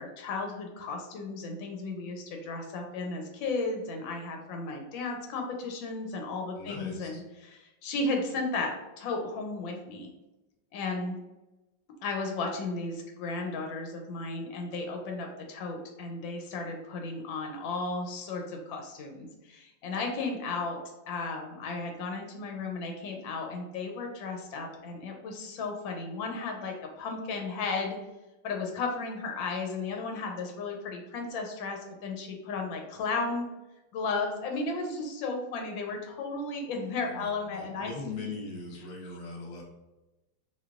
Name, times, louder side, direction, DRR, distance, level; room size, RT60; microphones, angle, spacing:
voice 1, 0.0-10.1 10.7-11.2 12.0-20.8 21.1-28.0 28.4-33.4 33.9-38.3, left 3 dB, 85° left, 2 dB, 1.4 m, -34 dB
voice 2, 6.6-7.2 37.0-39.6, left 3 dB, 50° left, -2 dB, 1.2 m, -40 dB
3.8 x 2.9 x 2.4 m, 1.0 s
omnidirectional pair, 2.1 m